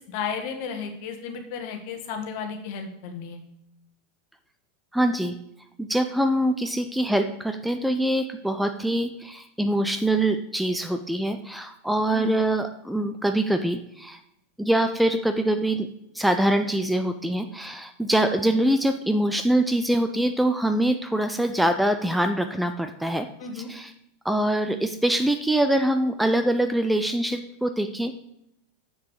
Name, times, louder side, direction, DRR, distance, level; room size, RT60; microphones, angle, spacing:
voice 1, 0.0-3.4 12.1-12.4 23.4-23.7, left 6 dB, 55° left, 5 dB, 1.5 m, -33 dB
voice 2, 4.9-5.3 5.8-14.2 14.6-15.9 16.1-23.3 23.5-23.9 24.2-28.2, right 1 dB, 5° right, 7 dB, 0.6 m, -24 dB
7.2 x 6.5 x 4.9 m, 0.79 s
figure-of-eight pair, 85°, 0 cm